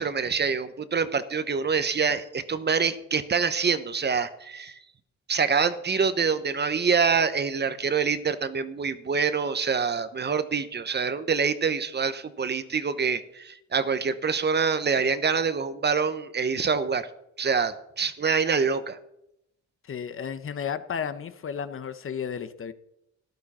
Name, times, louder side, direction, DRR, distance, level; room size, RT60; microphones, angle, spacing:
voice 1, 0.0-4.8 5.3-17.1 17.4-19.0, right 5 dB, 35° right, 12 dB, 1.0 m, -26 dB
voice 2, 19.8-22.7, left 7 dB, 45° left, 12 dB, 0.9 m, -33 dB
13.5 x 11.5 x 4.3 m, 0.80 s
cardioid pair, 90°, 30 cm